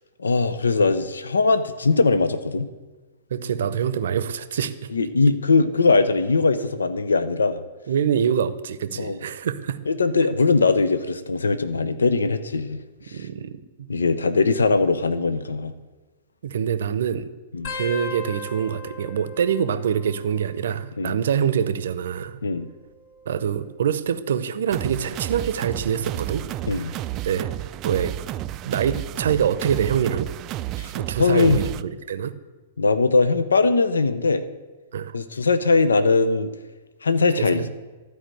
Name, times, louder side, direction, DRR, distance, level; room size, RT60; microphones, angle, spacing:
voice 1, 0.2-2.7 4.9-7.6 8.9-9.2 9.9-12.8 13.1-13.3 13.9-15.7 17.5-17.7 21.0-21.2 22.4-22.7 26.7-26.9 30.8-30.9 31.2-31.6 32.8-34.4 35.1-36.5 37.0-37.7, left 3 dB, 80° left, 12 dB, 0.6 m, -20 dB
voice 2, 3.3-4.7 7.9-9.8 13.1-13.6 16.4-17.3 17.7-22.4 23.3-26.5 27.2-27.5 27.8-28.2 28.7-30.3 30.9-32.3 34.9-35.2 37.4-37.7, right 8 dB, 65° right, 13 dB, 0.7 m, -25 dB
sound 1, 17.6-20.8 21.1-21.7 22.7-24.2 24.8-25.1 26.3-26.7 28.2-28.3, left 1 dB, 55° left, 2.0 m, -39 dB
sound 2, 24.7-31.8, right 14 dB, 35° right, 0.3 m, -31 dB
13.0 x 4.9 x 7.7 m, 1.2 s
figure-of-eight pair, 110°, 0 cm